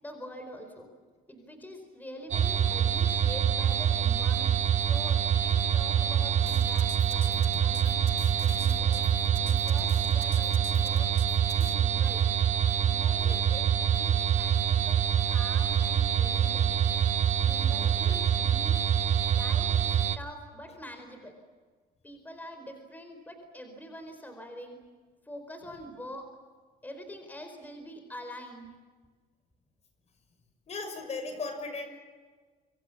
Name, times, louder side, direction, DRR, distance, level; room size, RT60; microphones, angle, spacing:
voice 1, 0.0-0.9 1.3-8.0 8.4-11.1 11.5-12.2 12.8-16.8 17.4-18.8 19.3-21.4 22.0-24.8 25.2-26.3 26.8-28.7, equal, 10° left, 6 dB, 4.4 m, -45 dB
sound 1, 2.3-20.2, right 9 dB, 45° right, 1.1 m, -25 dB
sound 2, 6.4-11.8, left 10 dB, 80° left, 2.6 m, -46 dB
voice 2, 17.7-18.2 30.7-31.9, left 3 dB, 40° left, 7 dB, 5.8 m, -38 dB
28.0 x 25.0 x 7.3 m, 1.5 s
cardioid pair, 110°, 17 cm